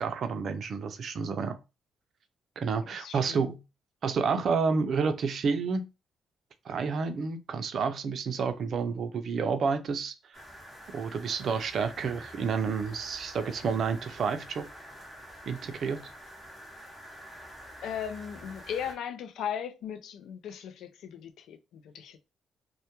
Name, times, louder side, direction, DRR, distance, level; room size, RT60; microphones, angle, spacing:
voice 1, 0.0-1.6 2.6-3.6 4.0-5.8 6.7-10.4 10.9-14.7 15.5-16.0, right 5 dB, 60° right, 0.4 m, -30 dB
voice 2, 3.0-3.4 17.8-22.2, left 8 dB, 80° left, 0.3 m, -37 dB
sound 1, 10.3-18.9, equal, 20° left, 0.8 m, -47 dB
2.1 x 2.1 x 2.9 m
cardioid pair, 80°, 0 cm